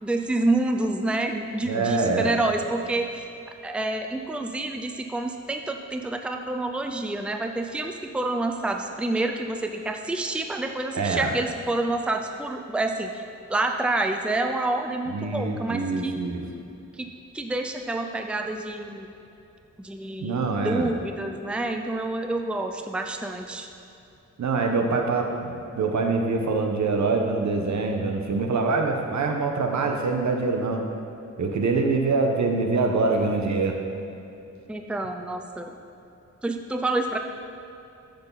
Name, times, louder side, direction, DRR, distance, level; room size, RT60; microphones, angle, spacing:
voice 1, 0.0-3.3 3.6-13.2 13.5-16.2 17.0-17.1 17.3-19.1 19.8-23.7 34.7-35.7 36.4-37.2, right 2 dB, 5° right, 4 dB, 0.5 m, -28 dB
voice 2, 1.7-2.3 10.9-11.3 15.1-16.4 20.2-20.9 24.4-30.8 31.4-33.8, right 3 dB, 70° right, 2 dB, 1.2 m, -24 dB
14.0 x 6.7 x 4.0 m, 2.8 s
wide cardioid pair, 110°, 29 cm